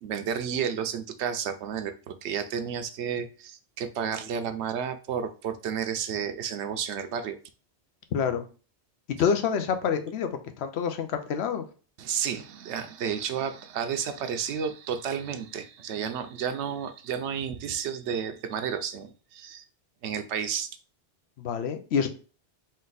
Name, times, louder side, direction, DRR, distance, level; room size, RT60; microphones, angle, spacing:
voice 1, 0.0-7.4 12.0-19.6 20.0-20.7, right 7 dB, 80° right, 9 dB, 0.9 m, -31 dB
voice 2, 8.1-8.4 9.2-10.3 10.6-11.6 21.4-22.1, left 7 dB, 75° left, 8 dB, 0.9 m, -27 dB
4.2 x 2.5 x 3.9 m, 0.36 s
omnidirectional pair, 1.1 m